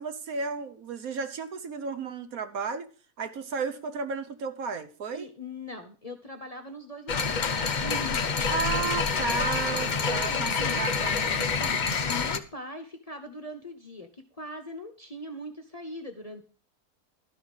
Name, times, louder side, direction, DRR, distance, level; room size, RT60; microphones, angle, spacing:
voice 1, 0.0-2.9 3.2-5.3 8.5-11.3, right 5 dB, 65° right, 9 dB, 1.4 m, -33 dB
voice 2, 5.1-7.3 7.8-8.5 10.0-10.9 11.6-16.4, left 1 dB, 30° left, 5 dB, 0.9 m, -41 dB
sound 1, 7.1-12.4, left 5 dB, 50° left, 0.5 m, -27 dB
13.0 x 5.7 x 6.3 m, 0.38 s
omnidirectional pair, 1.7 m